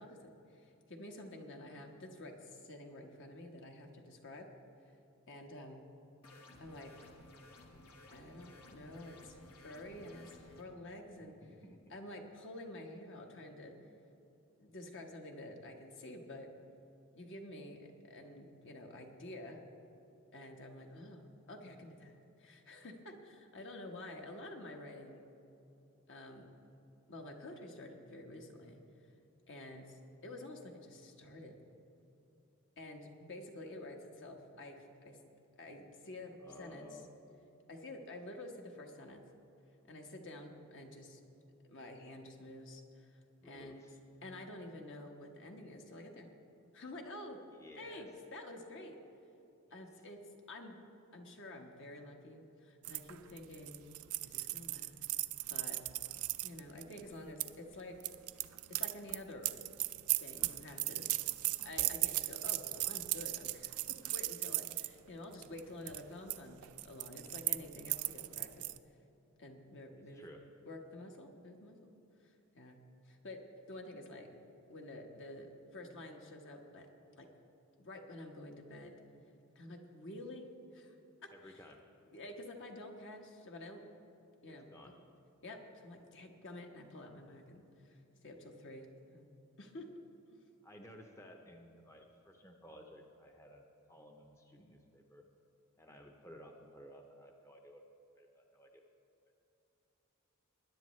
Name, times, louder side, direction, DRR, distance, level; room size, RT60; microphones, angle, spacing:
voice 1, 0.0-4.5 5.3-5.8 6.6-6.9 8.1-11.3 11.9-13.8 14.6-16.5 17.2-19.6 20.3-22.1 22.4-25.2 26.1-26.5 27.1-28.8 29.5-31.6 32.8-34.8 35.0-35.2 35.6-36.9 37.7-39.2 39.9-41.2 41.7-43.1 43.4-43.8 44.2-46.3 46.7-47.4 47.8-49.0 49.7-50.2 50.5-50.8 51.1-53.8 54.2-55.0 55.5-55.8 56.4-58.0 58.8-59.6 60.2-61.0 61.6-68.7 69.4-70.2 70.6-71.9 72.2-73.4 73.7-74.3 74.7-76.9 77.2-77.3 77.8-79.0 79.5-80.5 80.7-80.9 81.4-81.6 82.1-83.8 84.4-85.0 85.4-89.3 89.6-89.8, left 1 dB, 55° left, 2 dB, 1.3 m, -49 dB
sound 1, 6.2-10.6, left 2 dB, 80° left, 1.2 m, -57 dB
voice 2, 11.2-12.0 36.4-37.1 43.4-44.0 47.5-48.1 49.7-49.8 70.0-70.4 81.3-81.8 84.4-84.9 90.6-95.2 95.8-97.9 98.2-98.8 99.3-99.4, left 1 dB, 15° left, 2 dB, 0.7 m, -55 dB
sound 2, 52.8-57.5 58.0-64.9 65.3-65.6 65.9-66.4 66.6-68.8, right 18 dB, 70° right, 0.4 m, -37 dB
20.0 x 10.0 x 3.2 m, 2.8 s
head